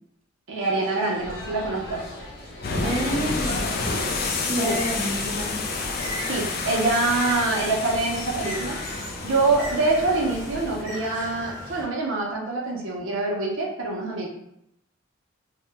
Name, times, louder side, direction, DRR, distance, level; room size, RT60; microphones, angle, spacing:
voice 1, 0.5-2.0 3.9-4.0 4.6-4.8 6.3-8.8 9.2-14.3, right 3 dB, 75° right, -1 dB, 0.6 m, -25 dB
sound 1, 0.6-6.6, left 1 dB, 90° left, 0.9 m, -43 dB
sound 2, 1.2-10.8, left 3 dB, 45° left, 0.3 m, -30 dB
Bird, 2.7-11.8, equal, 15° left, 0.8 m, -37 dB
voice 2, 2.8-3.9 4.4-5.6, right 1 dB, 30° right, -4 dB, 0.5 m, -29 dB
2.8 x 2.1 x 3.4 m, 0.78 s
head